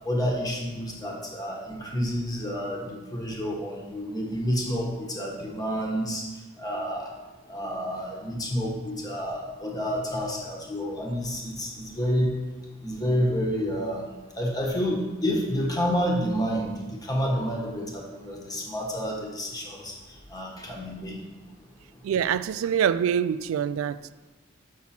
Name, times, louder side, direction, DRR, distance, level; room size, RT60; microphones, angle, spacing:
voice 1, 0.0-6.2 6.6-7.1 7.5-12.3 12.8-14.0 14.3-19.9 20.3-21.2, equal, 20° left, 1.4 m, -29 dB
voice 2, 22.0-24.1, right 8 dB, 90° right, 0.3 m, -25 dB
7.3 x 5.9 x 4.3 m
head